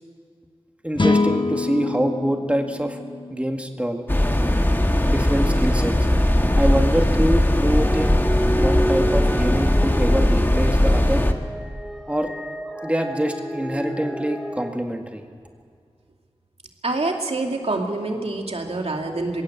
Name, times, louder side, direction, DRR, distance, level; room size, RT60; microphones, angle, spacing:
voice 1, 0.8-3.0 3.3-4.1 5.1-6.0 6.6-8.2 8.6-11.2 12.1-12.3 12.8-15.2, right 1 dB, 10° right, 4 dB, 1.8 m, -25 dB
sound 1, 1.0-4.3, left 3 dB, 50° left, 1.1 m, -25 dB
sound 2, 4.1-11.3, left 1 dB, 20° left, 1.5 m, -19 dB
sound 3, 7.4-14.7, equal, 5° left, 2.2 m, -30 dB
voice 2, 16.8-19.4, right 2 dB, 80° right, 2 dB, 2.5 m, -26 dB
21.5 x 17.0 x 8.2 m, 2.2 s
wide cardioid pair, 60°, 10 cm